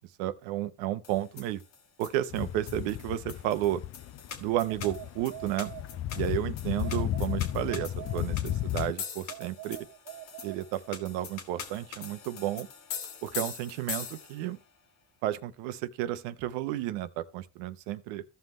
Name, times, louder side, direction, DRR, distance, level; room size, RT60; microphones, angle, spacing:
voice 1, 0.2-1.6 2.0-3.8 4.4-5.8 6.1-9.9 10.4-12.7 13.2-14.6 15.2-18.2, right 13 dB, 85° right, 0.9 m, -32 dB
sound 1, 1.0-14.6, left 7 dB, 90° left, 1.9 m, -43 dB
sound 2, 2.3-8.9, left 13 dB, 40° left, 0.4 m, -34 dB
sound 3, 4.5-6.3 6.8-8.7 9.3-11.2, right 16 dB, 60° right, 0.9 m, -46 dB
15.0 x 5.7 x 3.1 m
supercardioid pair, 95°, 36 cm